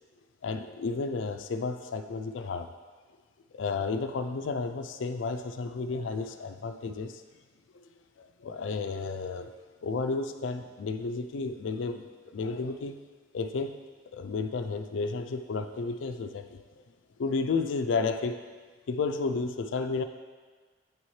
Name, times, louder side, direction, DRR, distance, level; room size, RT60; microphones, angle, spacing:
voice 1, 0.4-2.7 3.5-7.2 7.7-7.9 8.2-9.5 9.8-12.0 12.3-13.0 13.3-13.8 14.1-16.8 17.2-18.4 18.9-20.0, left 4 dB, 75° left, 8 dB, 0.4 m, -32 dB
8.6 x 4.3 x 3.2 m, 1.4 s
head